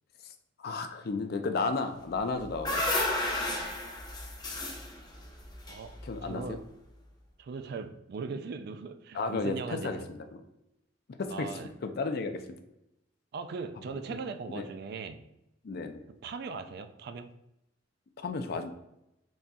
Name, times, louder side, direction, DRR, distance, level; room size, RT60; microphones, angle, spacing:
voice 1, 0.6-2.9 6.0-6.6 9.1-10.4 11.2-12.4 14.1-14.2 14.5-14.7 15.6-16.0 18.2-18.7, left 3 dB, 55° left, 0.4 m, -33 dB
sound 1, 2.2-6.4, left 1 dB, 20° left, 0.7 m, -33 dB
voice 2, 6.2-6.6 7.4-10.1 11.3-11.7 13.3-15.3 16.2-17.3, right 4 dB, 60° right, 0.3 m, -39 dB
4.1 x 3.6 x 2.3 m
head